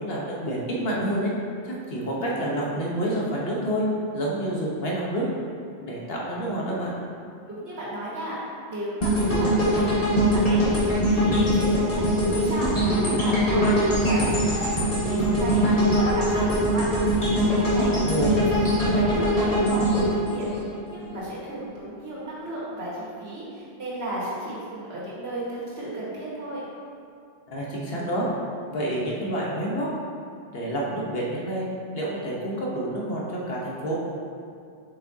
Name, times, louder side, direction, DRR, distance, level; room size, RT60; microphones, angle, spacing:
voice 1, 0.0-1.3 1.6-3.9 4.1-5.3 5.8-6.9 18.0-18.3 27.5-28.3 28.7-29.9 30.5-31.7 31.9-34.0, right 1 dB, 65° left, -4 dB, 1.3 m, -28 dB
voice 2, 7.5-8.4 8.7-17.9 18.2-26.6, right 1 dB, 70° right, -8 dB, 2.0 m, -34 dB
sound 1, 9.0-21.2 21.6-21.8, equal, 35° left, 1.5 m, -22 dB
7.5 x 5.4 x 2.8 m, 2.3 s
omnidirectional pair, 1.1 m